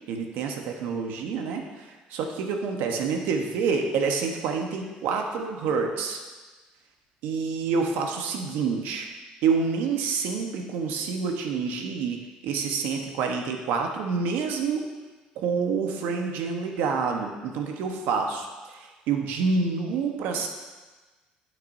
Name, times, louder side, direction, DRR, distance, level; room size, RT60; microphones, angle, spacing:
voice 1, 0.1-6.2 7.2-9.1 9.4-14.8 15.4-18.5 18.7-20.5, right 5 dB, 80° right, 3 dB, 1.1 m, -27 dB
9.4 x 8.9 x 2.7 m, 1.3 s
supercardioid pair, 90°, 3 cm